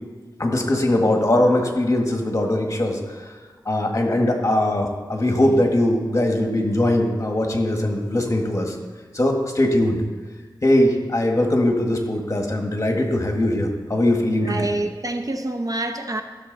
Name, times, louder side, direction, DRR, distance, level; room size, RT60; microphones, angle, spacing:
voice 1, 0.4-3.0 3.6-8.7 9.1-10.0 10.6-14.7, left 1 dB, 40° left, 2 dB, 1.7 m, -21 dB
voice 2, 14.4-16.2, right 2 dB, 50° right, 6 dB, 0.7 m, -26 dB
14.5 x 6.7 x 4.1 m, 1.4 s
wide cardioid pair, 60°, 8 cm